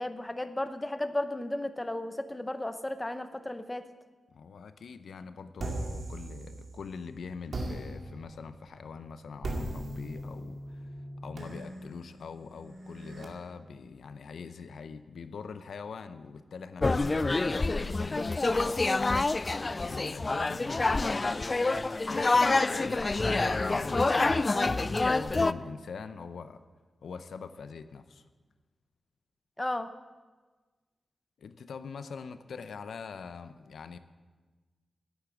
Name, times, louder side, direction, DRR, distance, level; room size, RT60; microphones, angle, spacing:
voice 1, 0.0-3.8 29.6-29.9, left 1 dB, 15° left, 9 dB, 0.7 m, -34 dB
voice 2, 4.3-19.5 19.8-21.6 22.1-26.6 27.0-28.2 31.4-34.0, left 5 dB, 85° left, 11 dB, 0.6 m, -43 dB
sound 1, 5.6-6.9 7.5-13.2, right 1 dB, 55° right, 2.1 m, -39 dB
sound 2, 16.8-25.5, left 3 dB, 30° left, 0.3 m, -27 dB
11.0 x 8.6 x 7.9 m, 1.3 s
wide cardioid pair, 125°, 0 cm